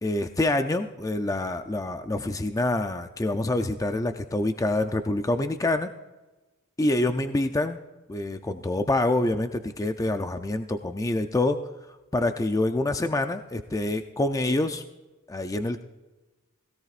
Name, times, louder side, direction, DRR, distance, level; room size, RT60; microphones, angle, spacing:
voice 1, 0.0-5.9 6.8-7.8 8.1-11.6 12.1-14.8 15.3-15.8, left 2 dB, 15° left, 7 dB, 0.5 m, -26 dB
17.5 x 16.5 x 2.5 m, 1.1 s
head